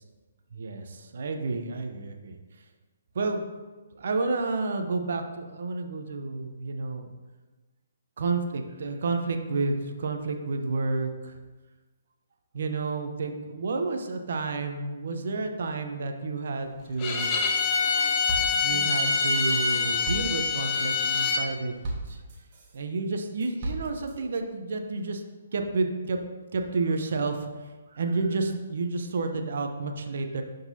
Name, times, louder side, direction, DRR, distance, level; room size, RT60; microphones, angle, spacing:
voice 1, 0.5-2.4 3.1-3.4 3.9-7.1 8.2-11.4 12.5-17.4 18.6-21.7 22.1-22.2 22.7-25.2 25.5-26.2 26.5-27.5 27.9-30.4, right 3 dB, 60° right, 5 dB, 0.7 m, -30 dB
Bowed string instrument, 17.0-21.5, left 5 dB, 30° left, 0.8 m, -25 dB
sound 1, 17.6-17.9 18.3-22.8 23.2-24.2, right 2 dB, 40° right, 1.4 m, -37 dB
11.5 x 3.9 x 2.7 m, 1.3 s
figure-of-eight pair, 130°, 0 cm